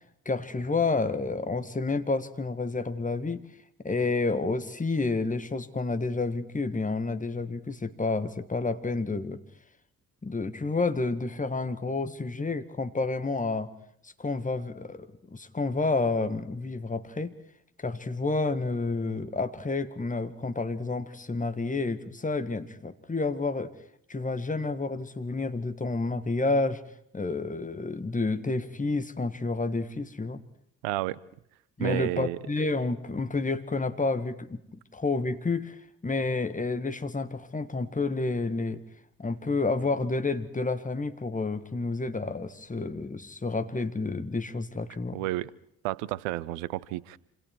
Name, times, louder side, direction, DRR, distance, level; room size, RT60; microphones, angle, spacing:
voice 1, 0.3-3.5 3.8-9.4 10.2-13.7 14.0-17.3 17.8-23.7 24.1-26.8 27.1-30.4 31.8-34.6 34.9-38.8 39.2-45.2, left 3 dB, 20° left, 10 dB, 1.9 m, -30 dB
voice 2, 30.8-31.2 31.8-32.4 45.1-45.5 45.8-47.2, right 17 dB, 70° right, 21 dB, 0.8 m, -31 dB
27.0 x 27.0 x 4.7 m, 0.70 s
figure-of-eight pair, 40°, 41 cm